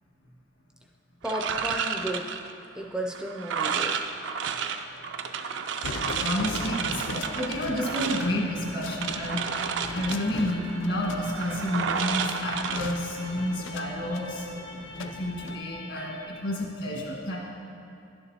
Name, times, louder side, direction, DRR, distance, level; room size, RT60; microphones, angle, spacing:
voice 1, 1.2-2.3 2.8-3.9, right 1 dB, 5° right, 1 dB, 0.3 m, -33 dB
sound 1, 1.2-13.6, right 6 dB, 70° right, 0.4 m, -32 dB
sound 2, 5.8-15.6, left 3 dB, 90° left, 0.4 m, -40 dB
voice 2, 6.2-9.5 9.9-14.4 14.9-17.4, left 1 dB, 70° left, -3 dB, 1.7 m, -30 dB
sound 3, 6.4-16.3, left 2 dB, 55° left, 0.9 m, -45 dB
11.0 x 6.8 x 2.8 m, 2.6 s
head